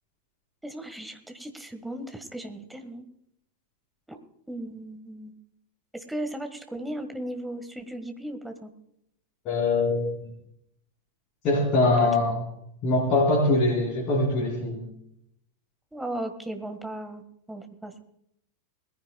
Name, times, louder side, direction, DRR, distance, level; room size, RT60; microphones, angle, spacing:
voice 1, 0.6-3.1 4.1-4.2 4.5-5.3 5.9-8.7 12.0-12.1 15.9-18.0, right 1 dB, 5° right, 6 dB, 1.7 m, -36 dB
voice 2, 9.4-10.3 11.4-12.4 12.8-14.9, left 2 dB, 35° left, -5 dB, 4.3 m, -23 dB
21.5 x 15.0 x 2.4 m, 0.74 s
figure-of-eight pair, 90°, 0 cm